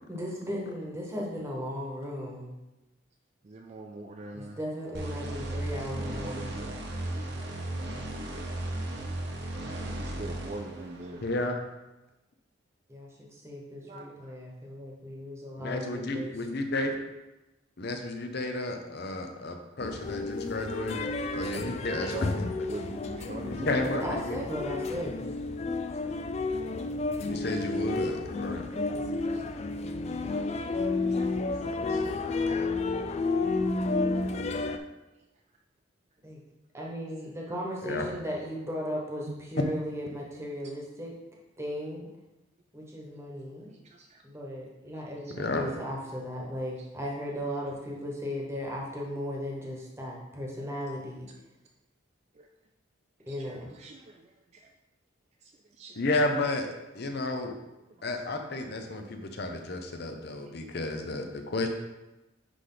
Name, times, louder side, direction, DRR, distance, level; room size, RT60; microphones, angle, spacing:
voice 1, 0.1-2.5 4.3-6.5 12.9-16.3 24.0-25.2 28.7-29.2 36.2-36.4 36.7-41.1 41.6-42.1 42.7-43.7 44.2-51.3 53.3-53.7, equal, 15° right, -2 dB, 1.3 m, -36 dB
voice 2, 3.4-4.6 5.7-6.7 8.9-9.0 9.8-11.3 13.8-14.3 21.5-24.0 26.5-26.6 29.3-29.4 31.1-31.4 31.9-32.0 33.0-33.1 39.3-39.4 43.7-44.2 45.3-45.4 52.4-52.5 53.3-54.6 55.4-56.0, right 3 dB, 35° right, 2 dB, 0.4 m, -43 dB
sound 1, 4.9-11.4, right 1 dB, 55° right, 0.9 m, -36 dB
voice 3, 11.2-11.6 15.6-17.0 17.8-22.4 23.5-24.4 27.3-28.7 31.6-32.6 37.8-38.1 45.4-45.6 56.0-56.7 56.9-57.6 58.0-61.7, left 2 dB, 55° left, 5 dB, 0.8 m, -32 dB
sound 2, 19.8-34.8, left 3 dB, 35° left, 0.4 m, -31 dB
9.9 x 3.3 x 3.9 m, 1.0 s
head